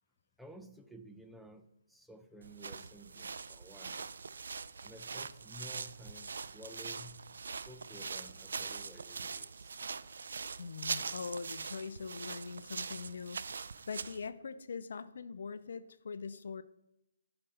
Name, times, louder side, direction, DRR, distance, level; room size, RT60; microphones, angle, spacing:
voice 1, 0.4-4.2 4.8-9.8, equal, ahead, 6 dB, 0.5 m, -53 dB
sound 1, 2.4-14.3, right 5 dB, 70° right, 0.4 m, -42 dB
voice 2, 10.6-16.6, left 5 dB, 65° left, 14 dB, 0.5 m, -42 dB
8.9 x 6.9 x 4.2 m, 0.84 s
hypercardioid pair, 145°, 0 cm